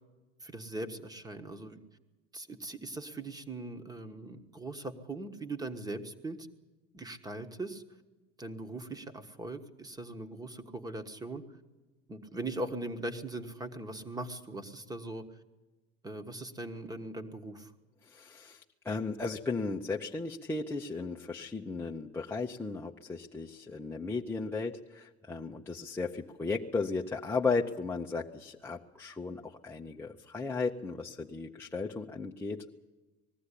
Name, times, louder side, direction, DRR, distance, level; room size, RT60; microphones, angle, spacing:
voice 1, 0.4-1.8 2.3-6.5 6.9-7.8 8.4-11.4 12.1-15.2 16.0-17.7, right 2 dB, 10° right, 9 dB, 1.4 m, -40 dB
voice 2, 18.0-32.7, left 4 dB, 5° left, -2 dB, 0.8 m, -35 dB
20.5 x 15.0 x 9.9 m, 1.2 s
supercardioid pair, 140°, 33 cm